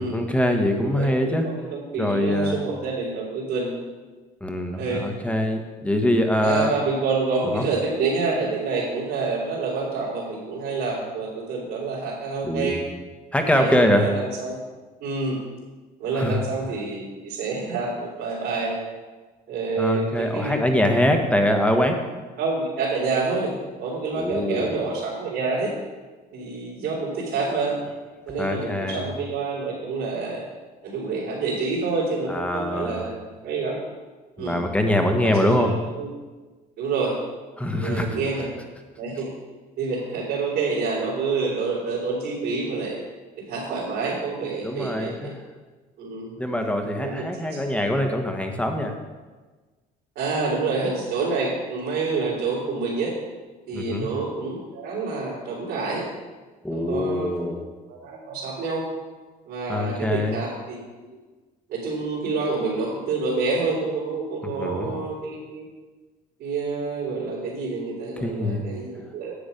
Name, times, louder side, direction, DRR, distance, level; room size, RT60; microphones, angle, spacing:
voice 1, 0.0-1.5 2.0-2.6 4.4-6.7 7.5-7.7 12.4-12.8 13.3-14.1 16.1-16.4 19.8-22.0 24.1-24.7 28.4-29.0 32.3-33.1 34.4-35.7 37.6-38.2 44.6-45.4 46.4-48.9 53.7-54.1 56.6-57.7 59.7-60.4 64.4-65.0 68.2-68.6, left 1 dB, 10° left, 4 dB, 1.3 m, -23 dB
voice 2, 0.6-3.8 4.8-5.1 6.4-12.8 13.4-14.6 15.0-15.4 16.0-18.8 19.5-20.6 22.4-23.5 23.8-25.7 26.3-27.8 28.3-30.4 30.8-33.8 34.4-34.6 35.2-35.3 35.6-36.1 36.8-37.2 37.7-38.5 39.0-39.3 39.8-43.0 43.5-45.3 46.0-46.3 47.0-47.2 50.1-53.1 53.7-56.0 56.7-57.3 57.9-58.8 59.5-61.2 61.7-65.6 66.4-69.3, right 4 dB, 80° right, -8 dB, 3.5 m, -27 dB
10.0 x 7.8 x 5.2 m, 1.3 s
cardioid pair, 110°, 17 cm